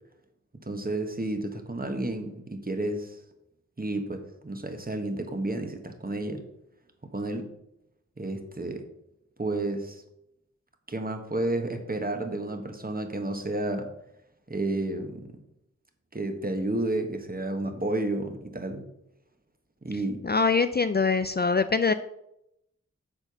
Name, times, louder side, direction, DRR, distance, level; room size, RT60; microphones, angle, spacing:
voice 1, 0.6-3.2 3.8-6.4 7.1-7.5 8.2-8.8 9.4-10.0 10.9-13.9 14.5-15.3 16.1-18.8 19.8-20.2, right 2 dB, 30° right, 5 dB, 1.3 m, -31 dB
voice 2, 20.2-21.9, left 4 dB, 35° left, 11 dB, 0.4 m, -23 dB
7.8 x 4.4 x 7.0 m, 0.81 s
wide cardioid pair, 70°, 29 cm